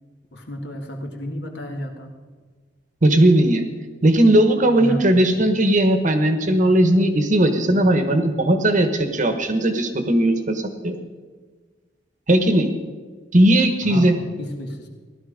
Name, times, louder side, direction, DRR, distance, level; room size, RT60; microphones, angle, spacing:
voice 1, 0.3-2.1 4.8-5.0 13.8-14.9, left 1 dB, 65° left, 2 dB, 1.9 m, -32 dB
voice 2, 3.0-3.6 4.0-11.0 12.3-12.7 13.3-14.2, right 1 dB, 45° right, 7 dB, 1.2 m, -17 dB
15.5 x 12.0 x 5.1 m, 1.4 s
head